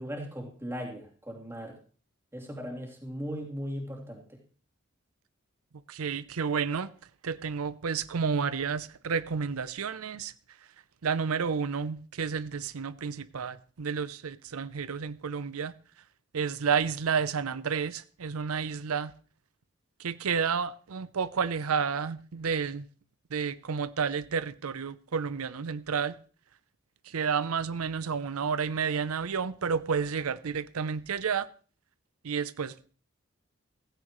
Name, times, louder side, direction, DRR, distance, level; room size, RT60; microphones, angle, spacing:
voice 1, 0.0-1.8 2.3-4.4, equal, 10° right, 3.1 m, -38 dB
voice 2, 5.9-6.9 7.2-10.7 11.0-15.7 16.3-19.1 20.0-22.9 23.3-26.2 27.0-31.5 32.2-32.9, right 6 dB, 90° right, 0.6 m, -31 dB
16.0 x 16.0 x 3.1 m
head